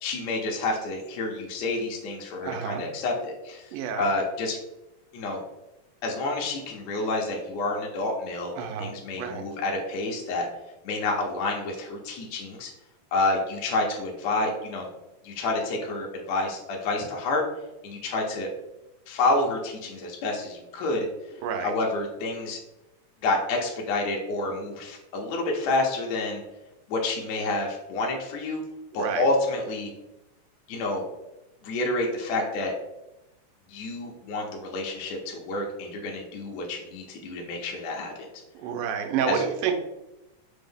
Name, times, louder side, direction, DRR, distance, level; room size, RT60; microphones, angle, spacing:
voice 1, 0.0-3.7 4.0-4.6 5.1-5.4 6.0-8.5 8.8-10.5 10.8-12.7 13.1-14.9 15.2-17.4 17.8-18.5 19.1-21.1 21.6-22.6 23.2-26.4 26.9-28.6 28.9-29.9 30.7-31.0 31.6-32.7 33.7-38.3 39.3-39.4, left 2 dB, 80° left, -1 dB, 1.7 m, -28 dB
voice 2, 2.4-2.8 3.7-4.1 8.6-9.5 21.4-21.7 28.9-29.2 38.5-39.7, right 7 dB, 85° right, 5 dB, 2.1 m, -29 dB
5.1 x 2.0 x 3.3 m, 0.93 s
omnidirectional pair, 3.5 m